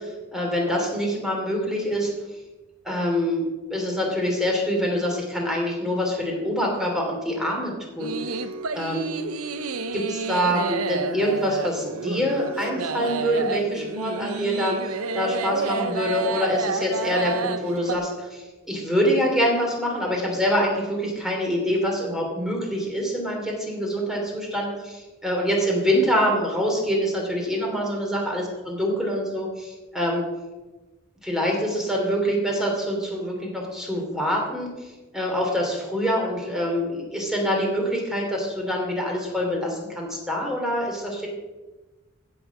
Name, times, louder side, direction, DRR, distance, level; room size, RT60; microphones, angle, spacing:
voice 1, 0.3-2.1 2.8-8.2 8.7-9.1 9.9-30.3 31.2-34.7 35.1-41.3, equal, ahead, -1 dB, 3.0 m, -25 dB
sound 1, 8.0-18.0, right 4 dB, 85° right, 0.7 m, -29 dB
15.5 x 6.4 x 6.0 m, 1.2 s
head